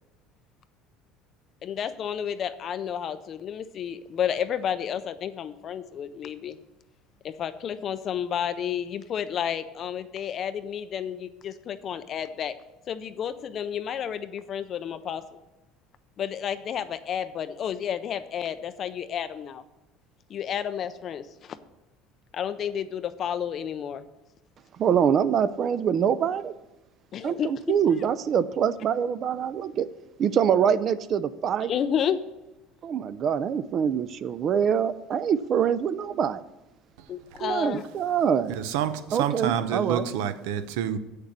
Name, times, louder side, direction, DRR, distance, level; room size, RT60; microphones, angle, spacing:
voice 1, 1.6-6.6 7.2-12.5 12.9-15.2 16.2-19.6 20.3-21.6 22.3-24.0 27.1-27.5 31.6-32.2 37.1-37.9, left 8 dB, 35° left, 11 dB, 0.4 m, -31 dB
voice 2, 24.8-26.5 27.2-29.9 30.2-31.7 32.8-36.4 37.4-38.5 39.1-40.0, right 8 dB, 35° right, 16 dB, 0.4 m, -24 dB
voice 3, 38.5-41.0, right 9 dB, 90° right, 12 dB, 0.7 m, -28 dB
8.2 x 6.6 x 7.3 m, 1.0 s
cardioid pair, 155°, 0 cm